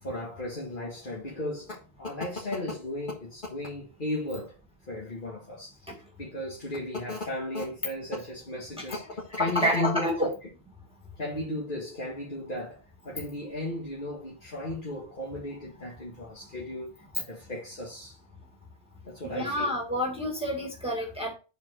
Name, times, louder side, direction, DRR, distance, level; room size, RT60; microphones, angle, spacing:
voice 1, 0.0-4.6 4.9-5.9 6.2-10.3 11.2-18.2 19.1-19.7, left 1 dB, 55° left, 1.9 m, -35 dB
voice 2, 9.4-10.3 19.2-21.3, equal, 5° right, 2.1 m, -28 dB
8.0 x 4.5 x 4.4 m
omnidirectional pair, 1.0 m